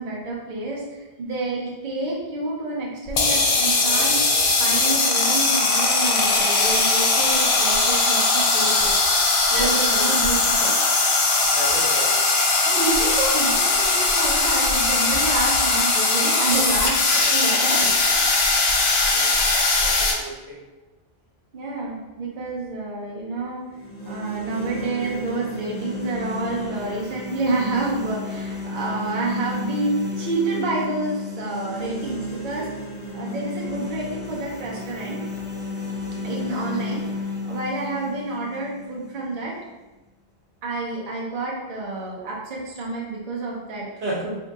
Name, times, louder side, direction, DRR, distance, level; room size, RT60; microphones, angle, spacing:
voice 1, 0.0-4.2 4.6-9.1 9.5-10.8 12.6-17.0 17.3-18.1 21.5-23.6 24.0-32.7 33.1-35.2 36.2-37.1 37.4-39.5 40.6-43.9 44.2-44.3, right 3 dB, 55° right, -4 dB, 0.8 m, -28 dB
sound 1, 3.1-20.1, left 3 dB, 65° left, 0.7 m, -20 dB
voice 2, 11.5-12.1 19.1-19.4 19.8-20.6 44.0-44.2, right 1 dB, 80° right, -4 dB, 1.1 m, -31 dB
sound 2, 23.7-39.7, left 2 dB, 35° left, 0.7 m, -33 dB
2.8 x 2.7 x 3.5 m, 1.2 s
omnidirectional pair, 1.1 m